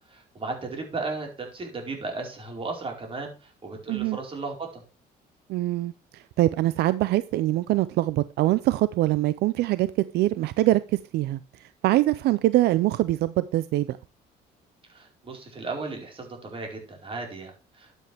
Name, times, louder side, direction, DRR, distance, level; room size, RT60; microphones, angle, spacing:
voice 1, 0.1-4.8 14.9-17.9, right 3 dB, 30° right, 1 dB, 4.7 m, -35 dB
voice 2, 5.5-9.9 10.1-14.0, right 16 dB, 75° right, 15 dB, 0.5 m, -24 dB
12.0 x 8.2 x 3.5 m, 0.33 s
cardioid pair, 110°, 17 cm